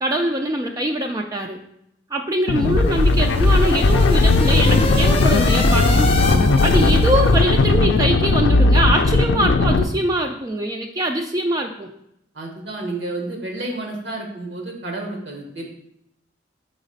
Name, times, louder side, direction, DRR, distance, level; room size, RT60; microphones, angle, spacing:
voice 1, 0.0-1.6 2.1-6.2 6.6-11.9, right 1 dB, 20° right, 3 dB, 0.3 m, -23 dB
sound 1, 2.5-9.8, left 3 dB, 80° left, 0.4 m, -17 dB
sound 2, 2.6-7.6, left 3 dB, 30° left, 0.6 m, -27 dB
voice 2, 6.2-6.7 12.3-15.7, right 2 dB, 70° right, 1 dB, 1.3 m, -30 dB
4.8 x 4.0 x 5.3 m, 0.78 s
head